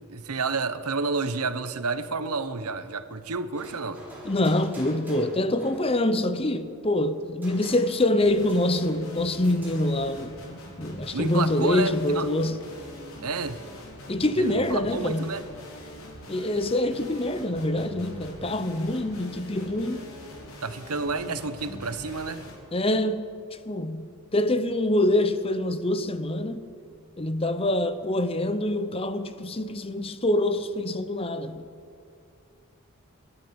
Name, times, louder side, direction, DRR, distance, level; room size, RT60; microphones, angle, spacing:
voice 1, 0.0-4.0 11.1-12.3 13.2-13.6 14.4-15.4 20.6-22.5, right 4 dB, 90° right, 1.1 m, -30 dB
sound 1, 2.7-3.1 3.6-6.1 7.4-9.0 9.4-9.9, equal, 10° right, 6.4 m, -47 dB
voice 2, 4.2-10.3 10.8-12.6 14.1-15.3 16.3-20.0 22.7-23.3 23.7-26.6 27.2-31.6, left 1 dB, 25° left, 0.8 m, -25 dB
sound 2, 8.2-22.5, left 1 dB, 70° left, 4.4 m, -44 dB
29.0 x 12.5 x 7.1 m
head